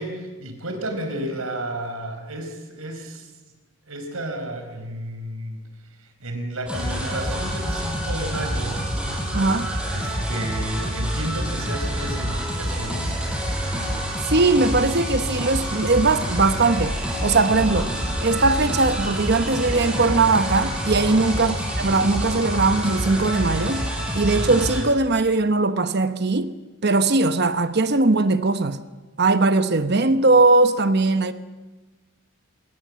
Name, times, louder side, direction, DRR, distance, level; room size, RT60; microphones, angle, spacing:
voice 1, 0.0-3.3 3.9-5.6 6.0-8.9 9.9-13.1 21.1-21.3, right 1 dB, 85° right, 4.9 m, -32 dB
sound 1, 6.7-24.8, equal, 5° right, 5.4 m, -27 dB
voice 2, 9.3-9.7 14.3-17.9 18.2-23.9 24.1-26.5 26.8-28.8 29.2-31.3, right 3 dB, 50° right, 1.0 m, -20 dB
26.5 x 21.0 x 7.6 m
head